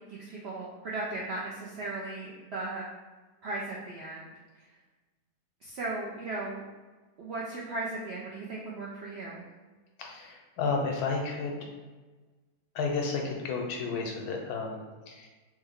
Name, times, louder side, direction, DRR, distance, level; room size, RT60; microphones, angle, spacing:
voice 1, 0.0-2.8 3.4-4.3 4.5-4.7 5.6-6.6 7.2-9.4, right 2 dB, 75° right, -5 dB, 0.6 m, -37 dB
voice 2, 10.0-11.5 12.7-15.3, left 4 dB, 80° left, 1 dB, 1.1 m, -32 dB
3.3 x 2.1 x 3.5 m, 1.3 s
omnidirectional pair, 1.6 m